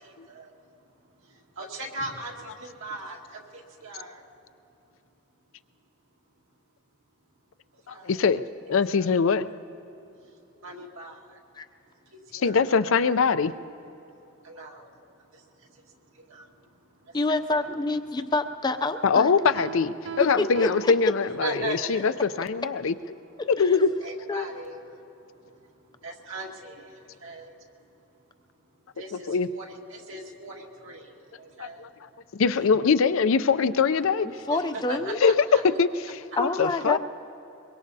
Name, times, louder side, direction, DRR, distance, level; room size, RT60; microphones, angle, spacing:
voice 1, 1.6-3.2 3.5-4.2 7.9-8.2 8.9-9.1 10.6-11.2 12.3-12.6 14.4-14.9 16.3-16.4 17.3-17.7 21.2-22.1 23.7-24.8 26.0-26.8 27.2-27.5 29.0-31.1 31.4-31.8 34.5-35.6, right 2 dB, 80° right, -1 dB, 1.9 m, -38 dB
voice 2, 7.9-8.4 8.7-9.5 12.4-13.5 19.0-22.9 23.5-23.9 29.3-29.5 31.8-31.9 32.3-34.3 35.1-35.3 35.8-37.0, left 5 dB, 80° left, 12 dB, 0.5 m, -23 dB
voice 3, 17.1-19.3 20.2-20.9 23.6-23.7 24.3-24.6 34.5-35.2 36.4-37.0, left 2 dB, 20° left, 9 dB, 0.4 m, -27 dB
Piano, 19.6-21.9, right 8 dB, 60° right, 0.4 m, -40 dB
23.0 x 23.0 x 2.7 m, 2.9 s
head